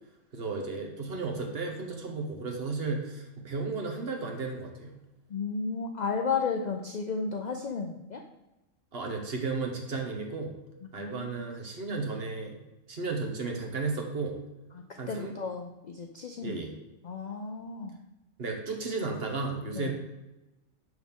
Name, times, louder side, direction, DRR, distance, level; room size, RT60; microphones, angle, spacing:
voice 1, 0.3-5.0 8.9-10.5 10.9-12.6 12.9-14.4 15.0-15.3 16.4-16.7 18.4-19.9, right 3 dB, 50° right, 2 dB, 1.2 m, -34 dB
voice 2, 5.3-8.2 11.0-11.5 14.7-16.6 17.0-18.0 19.7-19.9, left 5 dB, 60° left, 4 dB, 0.4 m, -33 dB
6.5 x 6.2 x 3.6 m, 1.0 s
omnidirectional pair, 1.3 m